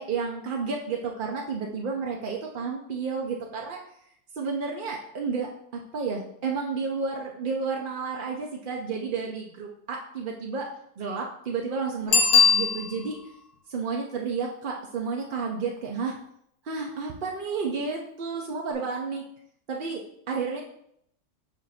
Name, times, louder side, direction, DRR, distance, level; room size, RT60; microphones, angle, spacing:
voice 1, 0.0-3.8 4.4-5.5 5.9-10.7 11.0-13.2 13.7-16.2 16.6-19.2 19.7-20.6, right 5 dB, 50° right, 0 dB, 0.6 m, -31 dB
Bicycle bell, 12.1-13.3 18.7-18.8, left 6 dB, 70° left, 1.6 m, -20 dB
7.3 x 2.6 x 5.5 m, 0.71 s
omnidirectional pair, 1.6 m